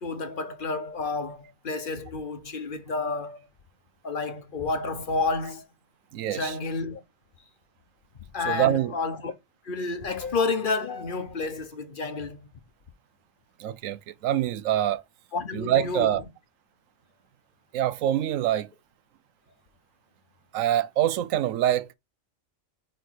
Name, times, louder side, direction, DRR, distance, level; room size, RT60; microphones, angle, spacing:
voice 1, 0.0-3.4 4.0-5.7 6.2-7.0 8.3-9.3 9.6-12.4 15.3-16.2, left 3 dB, 45° left, 1.1 m, -30 dB
voice 2, 6.1-6.5 8.5-8.9 13.6-15.0 15.5-16.2 17.7-18.7 20.5-21.9, right 11 dB, 85° right, 1.0 m, -25 dB
4.5 x 4.5 x 4.6 m
omnidirectional pair, 1.3 m